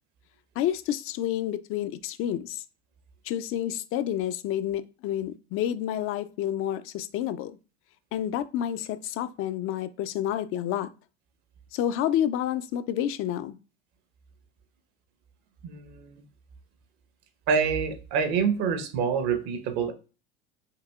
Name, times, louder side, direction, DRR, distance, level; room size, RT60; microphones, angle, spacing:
voice 1, 0.6-2.6 3.2-7.5 8.1-10.9 11.7-13.6, left 11 dB, 45° left, 0.4 m, -29 dB
voice 2, 15.6-16.2 17.5-19.9, right 6 dB, 60° right, 1.0 m, -26 dB
5.7 x 2.7 x 2.3 m
hypercardioid pair, 75°, 32 cm